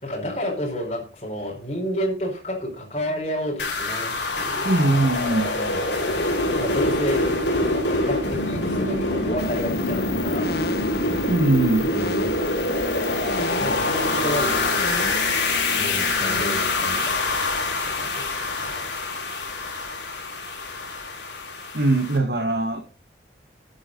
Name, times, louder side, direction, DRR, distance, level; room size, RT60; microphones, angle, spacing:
voice 1, 0.0-4.7 5.5-5.8 6.5-7.3 7.7-10.6 11.9-12.4 13.6-14.7 15.7-17.2 17.8-18.9, equal, 35° left, 4.4 m, -30 dB
sound 1, 3.6-22.2, left 2 dB, 80° left, 4.0 m, -25 dB
voice 2, 4.6-5.5 11.3-11.9 21.7-22.8, right 2 dB, 65° right, 1.7 m, -21 dB
sound 2, 9.4-17.1, left 4 dB, 60° left, 1.2 m, -34 dB
12.5 x 9.9 x 3.9 m
head